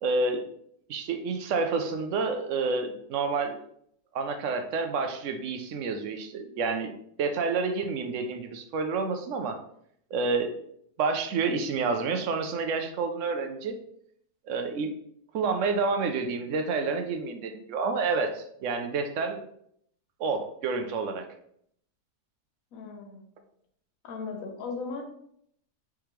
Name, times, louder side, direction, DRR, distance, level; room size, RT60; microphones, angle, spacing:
voice 1, 0.0-0.5 0.9-3.6 4.1-9.6 10.1-10.5 11.0-13.8 14.5-14.9 15.3-19.4 20.2-21.3, right 4 dB, 65° right, 6 dB, 0.8 m, -29 dB
voice 2, 22.7-23.3 24.0-25.0, left 4 dB, 65° left, 3 dB, 1.2 m, -37 dB
4.8 x 3.4 x 3.1 m, 0.69 s
omnidirectional pair, 1.6 m